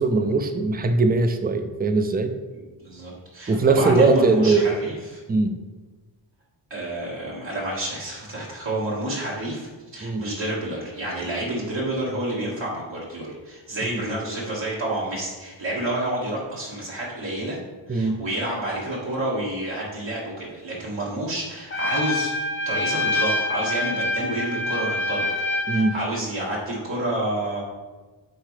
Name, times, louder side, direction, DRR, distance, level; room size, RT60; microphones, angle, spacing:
voice 1, 0.0-2.3 3.5-4.7 5.3-5.6 10.0-10.3 13.8-14.0 17.9-18.2 25.7-26.0, right 3 dB, 20° right, 8 dB, 0.5 m, -20 dB
voice 2, 2.8-5.2 6.7-17.6 17.9-22.4 22.7-25.3 25.7-27.6, right 1 dB, 70° right, -6 dB, 1.9 m, -29 dB
Trumpet, 21.7-26.0, left 1 dB, 25° left, 0.8 m, -26 dB
9.8 x 3.7 x 3.3 m, 1.3 s
cardioid pair, 75°, 46 cm